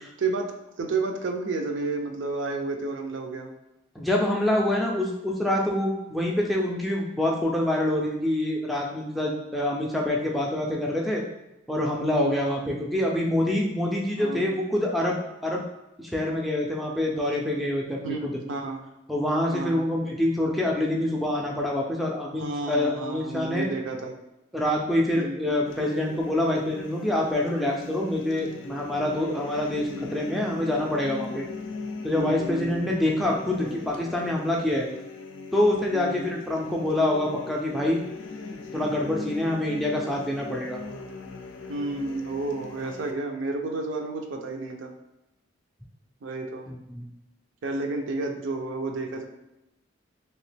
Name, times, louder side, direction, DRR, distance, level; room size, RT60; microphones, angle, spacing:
voice 1, 0.8-3.5 12.1-12.4 14.2-14.4 18.0-18.8 19.5-19.8 22.4-24.1 25.1-25.6 29.8-30.1 32.1-32.8 35.9-36.2 41.7-44.9 46.2-46.7 47.6-49.2, right 3 dB, 70° right, 4 dB, 0.4 m, -31 dB
voice 2, 4.0-11.2 11.7-15.6 16.0-18.4 19.1-23.7 24.5-31.4 32.0-34.9 35.5-38.0 38.7-40.8 46.7-47.0, left 1 dB, ahead, -2 dB, 0.4 m, -26 dB
sound 1, 25.7-43.1, left 4 dB, 75° left, 0.4 m, -40 dB
3.0 x 2.8 x 3.2 m, 0.95 s
head